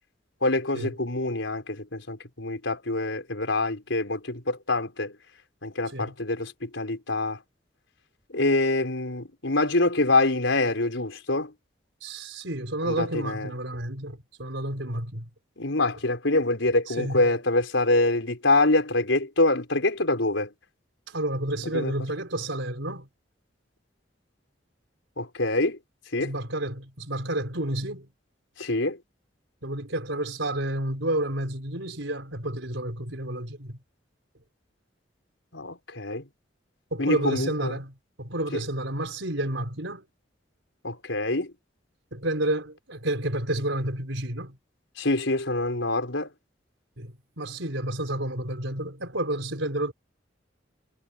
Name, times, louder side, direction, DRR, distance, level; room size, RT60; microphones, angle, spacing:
voice 1, 0.4-5.2 5.6-7.4 8.3-11.5 12.8-13.5 15.6-20.5 21.7-21.9 25.2-25.8 26.1-26.3 28.6-29.0 35.5-36.2 37.0-37.7 40.8-41.5 45.0-46.3, left 2 dB, 85° left, 4.8 m, -25 dB
voice 2, 12.0-15.3 16.9-17.3 21.1-23.1 26.2-28.1 29.6-33.8 36.9-40.1 42.1-44.6 47.0-49.9, right 1 dB, 80° right, 4.4 m, -30 dB
head